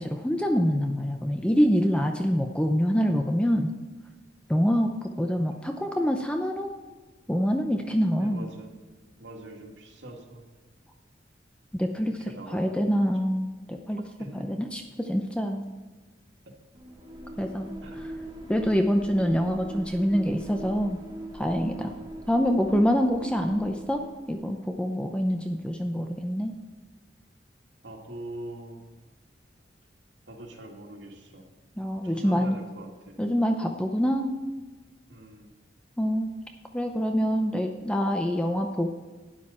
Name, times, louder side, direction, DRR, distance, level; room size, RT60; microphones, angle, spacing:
voice 1, 0.0-3.7 4.5-6.7 7.3-8.4 11.7-14.0 14.5-15.7 17.4-17.7 18.5-21.0 21.3-21.9 22.3-24.0 24.3-26.5 31.8-32.6 33.2-34.3 36.0-36.3 36.7-38.9, equal, 5° left, 4 dB, 0.6 m, -25 dB
voice 2, 8.2-8.7 9.2-10.4 12.2-13.1 14.0-14.5 17.8-18.0 21.7-22.1 27.8-28.8 30.3-31.5 32.0-33.1 35.1-35.5, right 1 dB, 90° right, 0 dB, 2.2 m, -43 dB
sound 1, 16.7-24.5, right 1 dB, 25° right, 1.5 m, -41 dB
12.0 x 9.8 x 4.3 m, 1.3 s
head